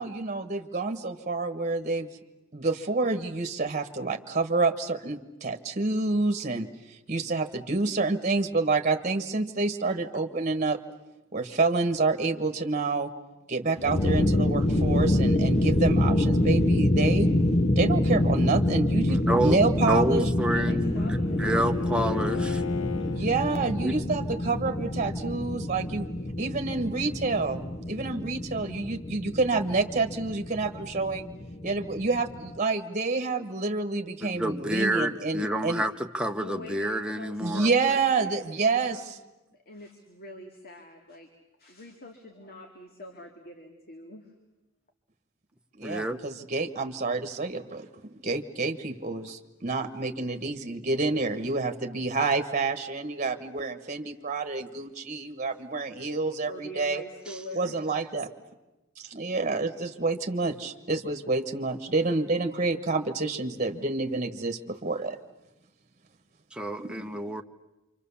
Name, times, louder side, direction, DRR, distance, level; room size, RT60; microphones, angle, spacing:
voice 1, 0.0-2.1 2.5-10.8 11.3-13.1 13.5-17.3 17.8-20.3 23.1-26.1 26.4-31.3 31.6-35.8 37.4-39.2 45.8-57.0 57.5-58.3 59.0-65.2 66.8-67.2, right 3 dB, 35° right, 7 dB, 1.3 m, -28 dB
sound 1, 13.8-32.6, left 1 dB, 30° left, 0.8 m, -26 dB
voice 2, 19.1-22.6 23.8-23.9 34.3-37.7 45.8-46.2 66.5-67.4, right 1 dB, 5° right, 4 dB, 1.0 m, -29 dB
Bowed string instrument, 19.6-23.3, left 7 dB, 85° left, 1.3 m, -36 dB
voice 3, 20.5-22.0 36.4-39.2 39.5-41.3 41.6-44.3 56.4-57.8, left 1 dB, 50° left, 3 dB, 2.3 m, -45 dB
27.5 x 25.5 x 7.1 m, 1.0 s
head